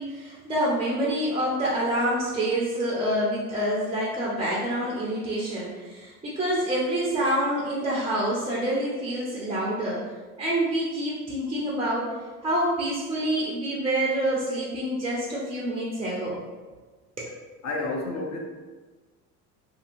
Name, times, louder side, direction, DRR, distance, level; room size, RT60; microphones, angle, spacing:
voice 1, 0.0-10.1 10.4-12.1 12.4-16.3 17.2-17.3, right 1 dB, 10° right, -5 dB, 0.5 m, -27 dB
voice 2, 17.6-18.4, left 2 dB, 35° left, 0 dB, 0.7 m, -30 dB
2.7 x 2.6 x 2.6 m, 1.3 s
hypercardioid pair, 65°, 48 cm